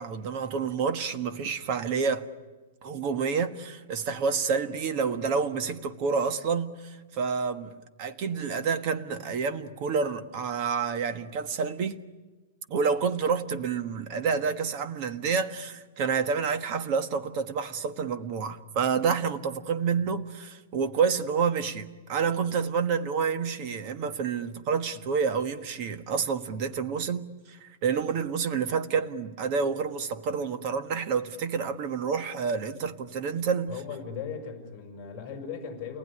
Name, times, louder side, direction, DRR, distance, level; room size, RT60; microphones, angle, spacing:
voice 1, 0.0-2.3 2.8-12.0 12.7-33.8, right 5 dB, 35° right, 1.4 m, -29 dB
voice 2, 33.7-36.0, left 6 dB, 20° left, 5.7 m, -38 dB
29.0 x 19.5 x 9.9 m
supercardioid pair, 170°, 0 cm